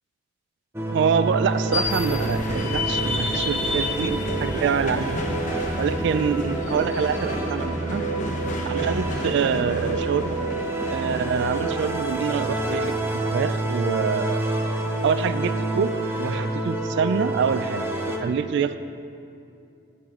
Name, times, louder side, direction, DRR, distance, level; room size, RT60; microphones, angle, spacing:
sound 1, 0.7-18.2, right 2 dB, 15° right, 0.7 m, -28 dB
voice 1, 0.9-5.2 5.8-8.0 8.6-10.4 10.9-14.4 15.0-18.8, right 6 dB, 65° right, 12 dB, 0.3 m, -26 dB
sound 2, 1.7-13.3, left 2 dB, 40° left, 0.8 m, -31 dB
11.0 x 7.7 x 3.7 m, 2.6 s
head